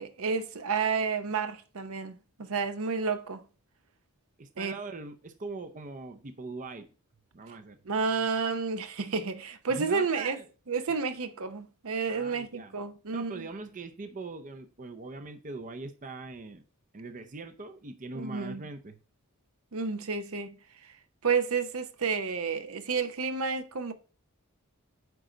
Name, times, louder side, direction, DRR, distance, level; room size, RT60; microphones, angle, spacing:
voice 1, 0.0-3.4 4.6-4.8 7.9-10.4 10.7-13.3 18.1-18.6 19.7-20.5 21.2-23.9, right 5 dB, 70° right, 0.7 m, -30 dB
voice 2, 4.4-6.9 7.3-7.8 9.7-10.5 12.1-12.8 13.1-16.6 16.9-19.0, right 3 dB, 35° right, 0.6 m, -41 dB
9.3 x 3.8 x 5.0 m
head